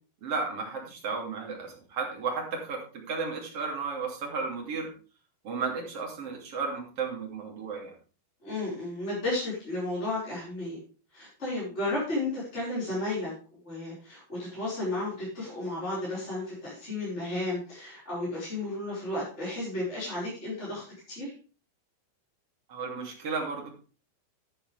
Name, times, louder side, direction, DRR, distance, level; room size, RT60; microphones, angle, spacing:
voice 1, 0.2-4.9 5.4-7.9 22.7-23.7, right 4 dB, 40° right, 0 dB, 2.9 m, -33 dB
voice 2, 8.4-10.8 11.1-20.8 21.1-21.3, left 2 dB, 15° left, -8 dB, 4.7 m, -33 dB
11.5 x 10.0 x 3.4 m, 0.38 s
omnidirectional pair, 5.3 m